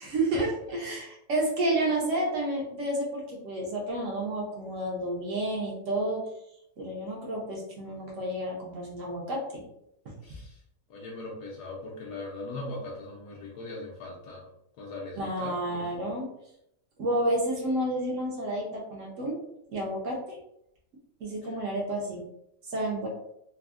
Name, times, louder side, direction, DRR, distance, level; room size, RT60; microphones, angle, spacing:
voice 1, 0.0-6.2 6.8-9.4 15.2-16.3 17.0-19.3 19.7-20.4 21.2-22.2 22.7-23.1, right 1 dB, 65° right, -1 dB, 0.8 m, -30 dB
voice 2, 10.2-10.6 10.9-14.5 14.8-15.9 21.4-21.5, left 2 dB, 75° left, -2 dB, 1.1 m, -40 dB
3.4 x 2.0 x 2.3 m, 0.78 s
omnidirectional pair, 1.9 m